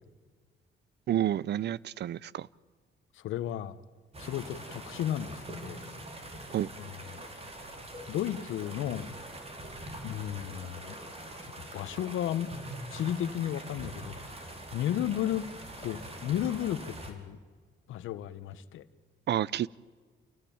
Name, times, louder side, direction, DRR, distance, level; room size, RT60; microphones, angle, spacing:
voice 1, 1.1-2.5 6.5-6.7 19.3-19.7, right 11 dB, 60° right, 0.6 m, -29 dB
voice 2, 3.2-3.8 4.2-5.8 6.8-7.2 8.1-9.1 10.0-11.0 11.5-12.5 12.9-14.3 14.7-15.5 15.8-17.4 17.9-18.8, left 11 dB, 80° left, 1.2 m, -33 dB
sound 1, 4.1-17.1, right 1 dB, 30° right, 4.4 m, -43 dB
28.5 x 17.0 x 8.8 m
cardioid pair, 90°, 20 cm